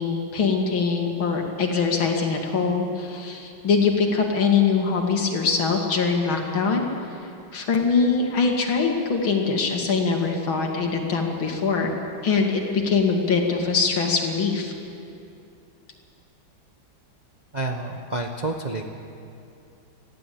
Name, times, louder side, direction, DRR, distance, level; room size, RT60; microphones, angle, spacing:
voice 1, 0.0-6.8 7.5-11.9 12.2-14.7, left 5 dB, 75° left, 2 dB, 3.0 m, -23 dB
voice 2, 17.5-18.8, right 2 dB, 30° right, 2 dB, 0.8 m, -29 dB
20.5 x 15.0 x 8.6 m, 2.6 s
omnidirectional pair, 2.3 m